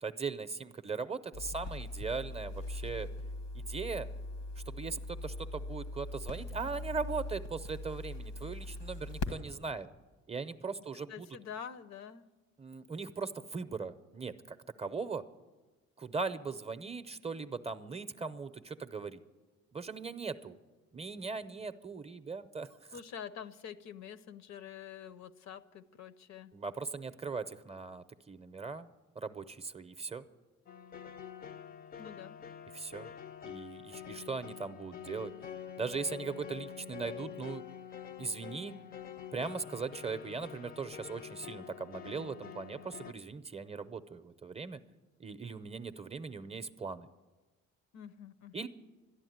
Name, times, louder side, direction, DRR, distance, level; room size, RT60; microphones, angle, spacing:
voice 1, 0.0-3.1 3.5-4.1 4.7-9.9 10.3-11.3 12.6-15.2 16.0-19.2 19.7-20.6 20.9-23.0 26.5-28.9 29.2-30.2 32.7-33.1 33.4-35.3 35.8-37.6 38.2-38.8 39.3-44.8 45.2-47.1 48.5-48.7, right 4 dB, 20° right, 11 dB, 0.6 m, -39 dB
sound 1, 1.3-9.3, left 2 dB, 90° left, 1.4 m, -41 dB
voice 2, 11.1-12.3 22.9-26.5 32.0-32.4 47.9-48.7, left 8 dB, 70° left, 14 dB, 0.8 m, -46 dB
sound 2, 30.7-43.1, left 8 dB, 30° left, 0.5 m, -46 dB
13.0 x 11.0 x 9.3 m, 1.2 s
cardioid pair, 100°, 29 cm